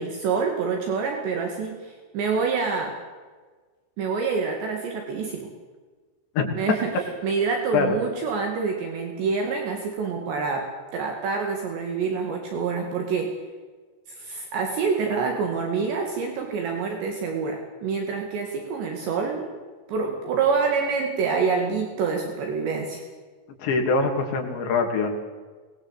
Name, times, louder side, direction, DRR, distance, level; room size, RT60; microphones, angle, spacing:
voice 1, 0.0-3.0 4.0-5.5 6.6-6.9 7.2-13.3 14.2-19.5 19.9-23.0, right 5 dB, 65° right, 2 dB, 4.3 m, -26 dB
voice 2, 23.6-25.1, left 4 dB, 65° left, 3 dB, 4.9 m, -23 dB
24.0 x 20.0 x 8.2 m, 1.4 s
omnidirectional pair, 5.6 m